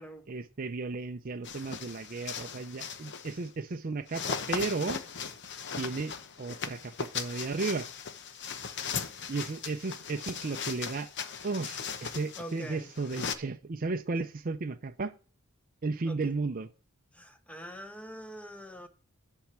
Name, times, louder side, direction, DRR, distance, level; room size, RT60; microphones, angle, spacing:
voice 1, 0.3-5.0 5.8-7.9 9.3-11.1 11.4-15.1 15.8-16.7, right 3 dB, 40° right, 0.5 m, -34 dB
sound 1, 1.4-3.5 4.1-13.4, left 6 dB, 55° left, 0.9 m, -38 dB
voice 2, 12.4-12.9 16.1-16.3 17.1-18.9, equal, 5° left, 1.0 m, -44 dB
10.5 x 4.6 x 7.3 m
head